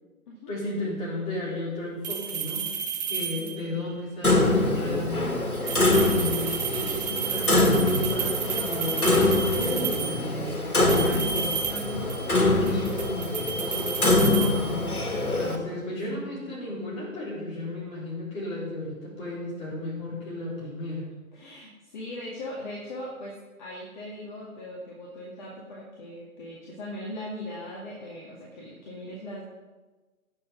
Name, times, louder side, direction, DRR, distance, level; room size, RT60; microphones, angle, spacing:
voice 1, 0.5-5.3 5.9-11.7 12.3-15.1 15.3-21.0, left 2 dB, 15° left, -7 dB, 4.0 m, -34 dB
sound 1, 2.0-3.8 5.5-10.3 10.8-12.4 12.7-15.1, right 7 dB, 30° right, 0.9 m, -32 dB
voice 2, 3.4-3.8 11.7-12.2 16.1-16.6 21.3-29.4, left 1 dB, 30° left, -4 dB, 2.1 m, -39 dB
Clock, 4.2-15.6, left 2 dB, 85° left, 2.3 m, -24 dB
18.5 x 7.4 x 3.9 m, 1.2 s
figure-of-eight pair, 135°, 43 cm